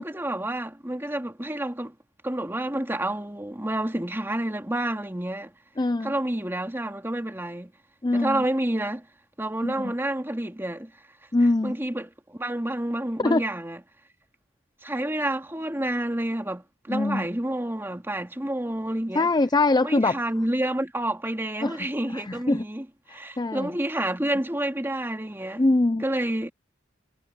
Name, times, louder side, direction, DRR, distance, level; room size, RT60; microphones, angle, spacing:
voice 1, 0.0-1.9 2.2-5.5 6.0-7.7 8.1-9.1 9.4-10.9 11.6-13.8 14.8-19.3 19.8-25.6 26.0-26.5, right 1 dB, 15° right, 2.3 m, -29 dB
voice 2, 5.8-6.1 8.0-8.4 9.6-9.9 11.3-11.7 13.2-13.4 16.9-17.3 19.1-20.2 21.6-21.8 22.1-22.6 23.4-23.7 25.6-26.0, left 2 dB, 20° left, 0.5 m, -23 dB
head